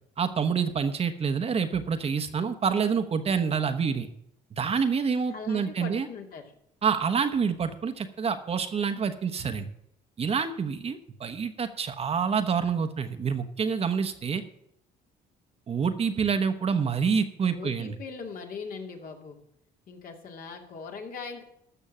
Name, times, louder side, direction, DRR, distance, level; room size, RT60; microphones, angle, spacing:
voice 1, 0.2-4.1 4.5-6.1 6.8-9.7 10.2-14.4 15.7-17.9, right 6 dB, 35° right, 8 dB, 1.1 m, -27 dB
voice 2, 5.3-6.5 17.4-19.4 19.9-21.4, left 5 dB, 55° left, 3 dB, 2.4 m, -40 dB
14.0 x 6.3 x 7.4 m, 0.73 s
cardioid pair, 110°, 17 cm